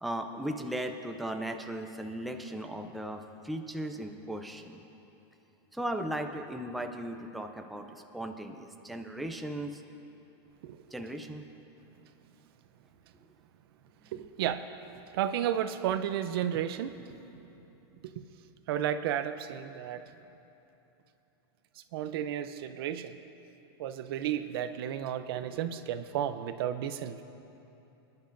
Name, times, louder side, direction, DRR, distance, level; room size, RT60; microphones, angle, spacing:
voice 1, 0.0-4.8 5.7-9.8 10.9-11.4 14.2-14.3, right 1 dB, ahead, 4 dB, 0.4 m, -37 dB
voice 2, 14.1-17.0 18.2-18.3 18.7-20.0 21.9-23.2 23.8-27.2, right 10 dB, 65° right, 11 dB, 0.6 m, -33 dB
25.5 x 10.5 x 2.6 m, 3.0 s
supercardioid pair, 155°, 14 cm